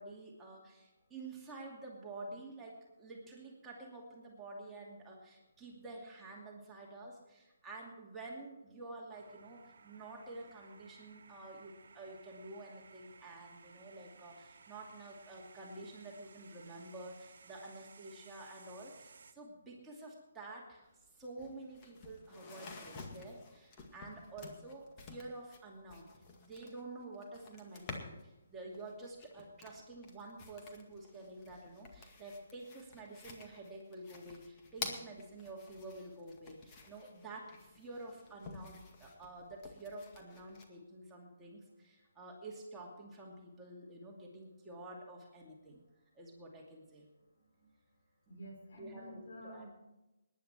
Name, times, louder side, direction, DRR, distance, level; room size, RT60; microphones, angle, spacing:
voice 1, 0.0-20.9 21.2-26.1 26.4-45.8 46.2-47.1 48.7-49.7, right 2 dB, 10° right, -3 dB, 2.5 m, -49 dB
sound 1, 9.1-19.3, right 5 dB, 65° right, 1.2 m, -59 dB
sound 2, 20.9-21.0 21.2-28.3 28.7-40.6, left 4 dB, 25° left, 2.0 m, -51 dB
voice 2, 48.3-49.7, right 1 dB, 60° left, 0 dB, 5.7 m, -49 dB
19.0 x 10.5 x 4.5 m, 0.97 s
figure-of-eight pair, 145°, 0 cm